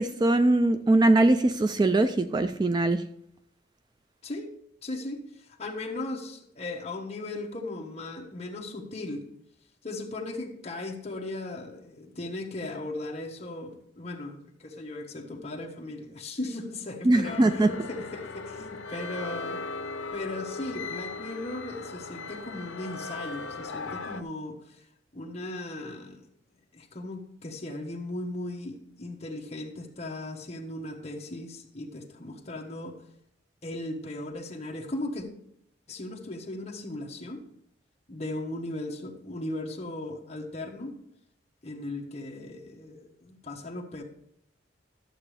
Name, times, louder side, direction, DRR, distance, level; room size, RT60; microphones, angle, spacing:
voice 1, 0.0-3.0 17.0-17.7, right 2 dB, 25° right, 10 dB, 0.3 m, -22 dB
voice 2, 4.8-9.2 9.8-19.6 20.1-24.8 25.1-26.2 26.7-33.0 33.6-35.3 35.9-37.4 38.1-40.9 41.6-44.0, left 2 dB, 35° left, 1 dB, 1.3 m, -37 dB
sound 1, 17.2-24.2, left 3 dB, 80° left, 0.7 m, -38 dB
12.0 x 7.3 x 3.3 m, 0.75 s
head